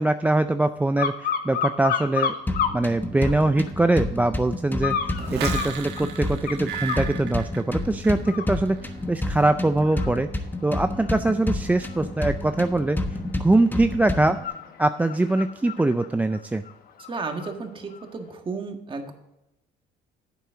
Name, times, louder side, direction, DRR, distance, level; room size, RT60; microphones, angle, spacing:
voice 1, 0.0-2.4 2.7-10.3 10.6-13.0 13.4-14.4 14.8-16.6, right 2 dB, 10° right, 9 dB, 0.4 m, -23 dB
sound 1, 1.0-2.8 3.2-3.9 4.8-7.1 7.6-7.8 8.2-17.5 17.9-18.0, left 7 dB, 60° left, 1.2 m, -32 dB
sound 2, 2.5-14.5, left 2 dB, 10° left, 1.2 m, -30 dB
sound 3, 5.2-8.2 8.5-9.0, right 8 dB, 80° right, 1.4 m, -34 dB
voice 2, 17.1-19.1, right 4 dB, 30° right, 5 dB, 1.7 m, -33 dB
11.0 x 8.3 x 3.8 m, 0.90 s
cardioid pair, 110°, 17 cm